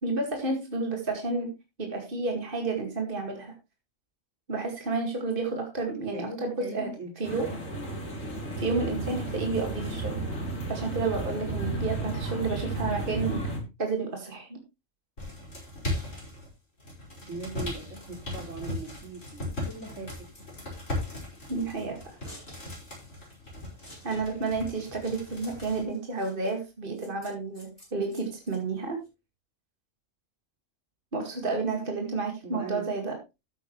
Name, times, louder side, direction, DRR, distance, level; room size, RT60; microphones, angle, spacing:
voice 1, 0.0-1.5 1.8-3.5 4.5-7.5 8.6-10.2 10.7-13.4 13.8-14.6 21.5-22.2 24.0-29.0 31.1-33.2, right 3 dB, 40° right, 3 dB, 2.4 m, -31 dB
voice 2, 6.1-7.4 17.3-20.3 32.4-32.9, right 3 dB, 70° right, 3 dB, 3.6 m, -40 dB
sound 1, 7.2-13.6, right 2 dB, 85° left, 3.7 m, -33 dB
sound 2, 15.2-16.5 16.8-25.8, left 2 dB, 65° left, 5.7 m, -38 dB
Scissors, 18.7-29.1, equal, 30° left, 8.3 m, -54 dB
13.0 x 9.1 x 3.2 m, 0.25 s
omnidirectional pair, 1.3 m